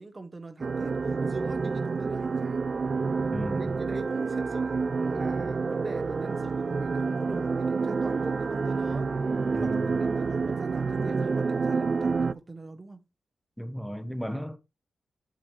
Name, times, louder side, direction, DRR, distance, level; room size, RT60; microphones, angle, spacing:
voice 1, 0.0-2.6 3.9-9.1 9.5-13.0, right 2 dB, 30° right, 0.8 m, -42 dB
sound 1, 0.6-12.3, right 4 dB, 50° right, 0.4 m, -28 dB
voice 2, 3.3-3.8 9.5-9.9 13.6-14.6, equal, ahead, 0.9 m, -35 dB
7.6 x 6.9 x 3.1 m
cardioid pair, 75°, 0 cm